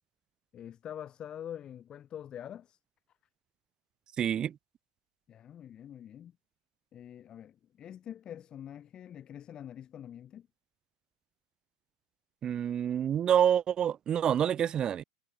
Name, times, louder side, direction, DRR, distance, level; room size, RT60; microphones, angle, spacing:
voice 1, 0.5-2.8 5.3-6.3 6.9-10.5, left 10 dB, 30° left, 2.9 m, -45 dB
voice 2, 4.2-4.6 12.4-15.0, right 9 dB, 30° right, 0.8 m, -27 dB
hypercardioid pair, 110°, 3 cm